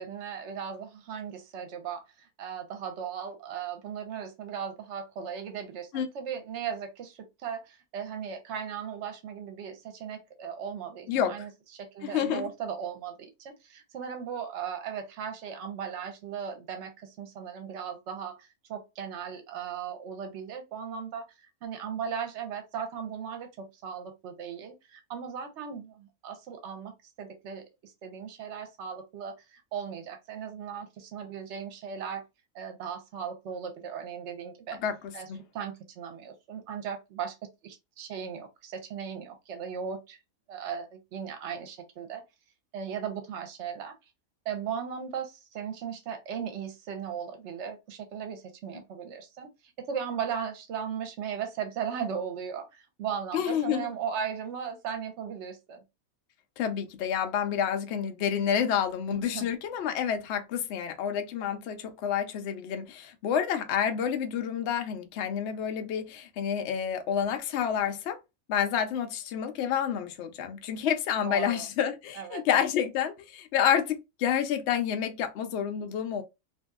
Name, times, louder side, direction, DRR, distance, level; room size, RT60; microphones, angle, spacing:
voice 1, 0.0-32.3 32.5-34.8 35.1-35.3 35.5-40.2 40.5-42.2 42.7-44.0 44.4-49.5 49.8-55.8 59.1-59.5 71.2-71.7 72.1-72.4, right 7 dB, 60° right, 0.9 m, -37 dB
voice 2, 12.0-12.5 34.8-34.9 35.3-35.4 53.3-53.9 56.6-68.2 68.5-76.2, left 8 dB, 65° left, 0.7 m, -29 dB
2.7 x 2.6 x 2.3 m
omnidirectional pair, 1.5 m